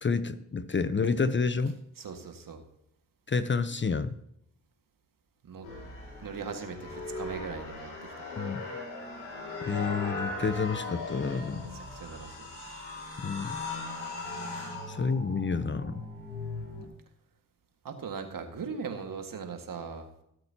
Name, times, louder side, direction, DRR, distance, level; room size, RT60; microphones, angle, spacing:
voice 1, 0.0-1.8 3.3-4.2 8.4-8.6 9.7-11.6 13.2-13.5 14.9-16.0, left 5 dB, 30° left, 13 dB, 0.8 m, -29 dB
voice 2, 2.0-2.6 5.4-5.7 6.2-7.9 8.2-8.3 11.5-12.5 14.5-14.7 17.8-20.1, right 5 dB, 55° right, 5 dB, 1.9 m, -39 dB
sound 1, 5.6-16.9, left 3 dB, 90° left, 2.5 m, -39 dB
18.5 x 7.8 x 2.9 m, 0.78 s
hypercardioid pair, 40°, 39 cm